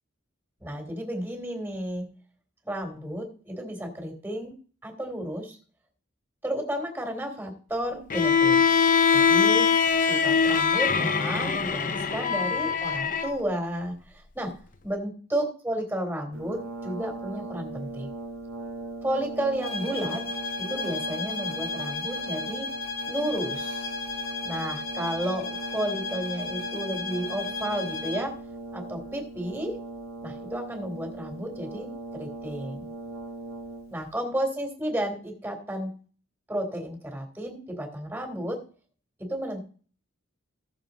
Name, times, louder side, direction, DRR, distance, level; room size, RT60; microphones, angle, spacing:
voice 1, 0.6-2.1 2.6-4.5 4.8-5.6 6.4-8.6 9.1-9.6 10.0-13.9 14.3-14.5 14.8-18.1 19.0-20.2 20.7-22.7 23.1-23.9 24.4-28.3 28.7-29.7 30.2-31.9 32.1-32.9 33.9-35.9 36.5-38.6 39.3-39.6, right 1 dB, 10° right, 3 dB, 3.0 m, -32 dB
Bowed string instrument, 8.1-13.3, left 6 dB, 40° left, 0.8 m, -22 dB
Brass instrument, 16.3-34.1, right 3 dB, 90° right, 1.6 m, -39 dB
sound 1, 19.6-28.3, left 3 dB, 80° left, 2.5 m, -34 dB
16.5 x 7.1 x 4.0 m, 0.42 s
head